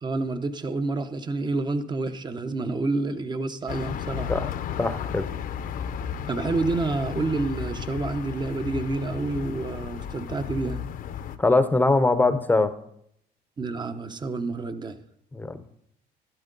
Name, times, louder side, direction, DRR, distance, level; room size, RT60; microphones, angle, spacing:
voice 1, 0.0-4.3 6.3-10.8 13.6-15.0, right 3 dB, 25° right, 10 dB, 0.8 m, -28 dB
sound 1, 3.7-11.4, left 8 dB, 60° left, 0.7 m, -33 dB
voice 2, 4.8-5.3 11.4-12.7 15.3-15.6, left 2 dB, 10° left, 11 dB, 0.7 m, -21 dB
12.0 x 11.5 x 3.9 m, 0.73 s
cardioid pair, 110°, 17 cm